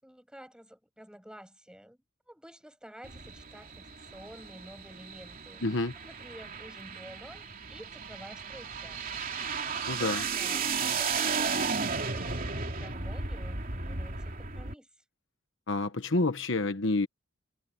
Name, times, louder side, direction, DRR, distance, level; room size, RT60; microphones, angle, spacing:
voice 1, 0.0-2.0 2.3-5.6 6.0-9.0 9.6-14.9, equal, 5° right, 6.4 m, -50 dB
sound 1, 3.0-14.7, right 5 dB, 40° right, 3.0 m, -34 dB
voice 2, 5.6-5.9 9.9-10.2 15.7-17.1, left 2 dB, 60° left, 1.2 m, -28 dB
head